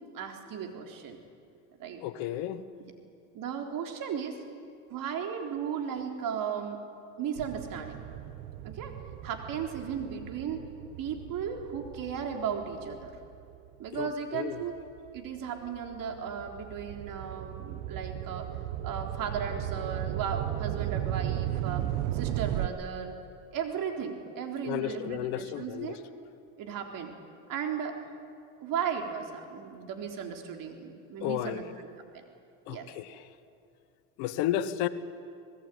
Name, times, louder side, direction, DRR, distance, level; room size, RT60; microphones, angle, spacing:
voice 1, 0.1-1.2 1.8-2.0 2.8-2.9 3.3-4.4 4.9-6.9 7.2-8.0 8.6-9.0 9.2-10.6 11.0-13.2 13.8-14.7 15.1-18.5 18.8-21.9 22.1-23.2 23.5-26.0 26.6-27.1 27.5-28.0 28.6-31.6 32.1-32.2 32.7-32.9, right 7 dB, 55° right, 4 dB, 3.8 m, -35 dB
voice 2, 2.0-2.6 13.9-14.6 24.6-26.0 31.2-31.7 32.7-33.2 34.2-34.9, left 12 dB, 75° left, 13 dB, 1.4 m, -33 dB
sound 1, 7.4-14.1 14.7-22.7, right 12 dB, 80° right, 1.1 m, -36 dB
25.0 x 19.5 x 9.4 m, 2.4 s
supercardioid pair, 95°, 39 cm